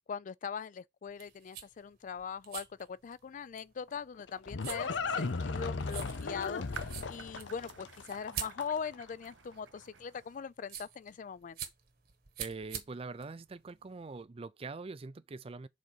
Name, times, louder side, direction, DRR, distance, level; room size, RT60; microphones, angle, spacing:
voice 1, 0.1-6.6 7.1-11.6, left 6 dB, 45° left, 0.3 m, -41 dB
sound 1, 1.1-14.2, right 8 dB, 55° right, 1.4 m, -47 dB
Livestock farm animals working animals, 3.9-9.0, left 4 dB, 90° left, 0.7 m, -36 dB
sound 2, 6.4-10.4, right 7 dB, 90° right, 0.7 m, -52 dB
voice 2, 12.4-15.7, right 3 dB, 30° right, 0.4 m, -43 dB
5.1 x 4.0 x 5.5 m
head